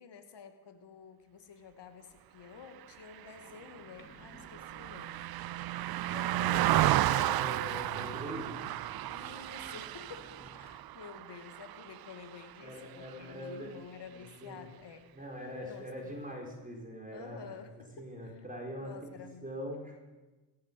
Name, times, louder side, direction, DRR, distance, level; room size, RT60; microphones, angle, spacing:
voice 1, 0.0-5.3 6.1-7.5 9.1-15.1 15.6-16.2 17.1-18.4 18.8-19.5, left 6 dB, 55° left, 7 dB, 2.2 m, -50 dB
Car passing by, 3.1-12.7 13.1-13.3, right 14 dB, 50° right, 0.5 m, -33 dB
Clock, 4.0-10.7, left 1 dB, 25° left, 3.9 m, -58 dB
voice 2, 6.4-8.6 12.6-13.8 14.1-14.7 15.1-20.0, equal, 15° right, 0 dB, 4.7 m, -43 dB
16.5 x 9.7 x 7.6 m, 1.2 s
supercardioid pair, 65°, 49 cm